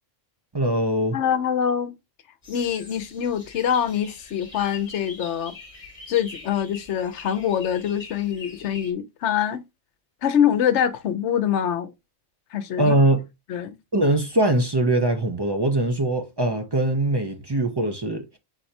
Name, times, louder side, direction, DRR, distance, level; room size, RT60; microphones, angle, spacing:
voice 1, 0.5-1.2 12.8-13.3 13.9-18.4, right 1 dB, 35° right, 0.4 m, -22 dB
voice 2, 1.1-1.9 2.5-5.5 6.1-9.6 10.2-11.9 12.5-13.0 13.5-13.7, left 9 dB, 65° left, 1.0 m, -24 dB
sound 1, 2.4-8.9, left 3 dB, 25° left, 1.3 m, -44 dB
4.5 x 4.1 x 2.6 m
omnidirectional pair, 1.4 m